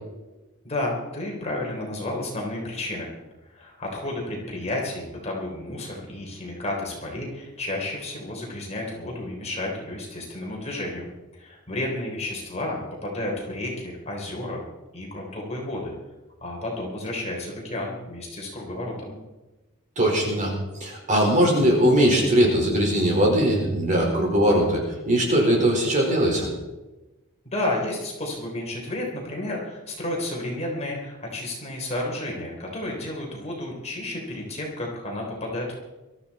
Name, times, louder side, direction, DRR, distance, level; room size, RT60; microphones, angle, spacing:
voice 1, 0.6-3.1 3.5-11.1 11.3-14.6 14.9-15.9 16.4-19.1 27.5-35.8, left 1 dB, 30° left, -1 dB, 3.7 m, -31 dB
voice 2, 20.0-20.5 20.8-26.5, equal, 35° right, 0 dB, 4.5 m, -20 dB
22.0 x 13.5 x 4.2 m, 1.1 s
head